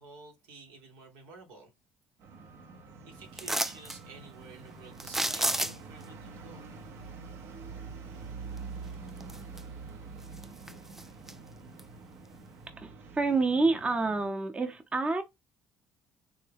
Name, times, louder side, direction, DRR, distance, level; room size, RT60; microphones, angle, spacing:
voice 1, 0.0-1.7 3.0-6.7, right 3 dB, 80° right, 1.1 m, -51 dB
sound 1, 2.2-14.3, right 4 dB, 65° right, 0.7 m, -46 dB
sound 2, 3.4-4.0 5.0-6.0 8.6-8.7 9.2-9.9 10.2-11.3 11.8-11.9, right 1 dB, 5° right, 0.3 m, -31 dB
voice 2, 12.8-15.2, right 3 dB, 25° right, 0.7 m, -28 dB
3.6 x 2.1 x 3.3 m
hypercardioid pair, 60°, 5 cm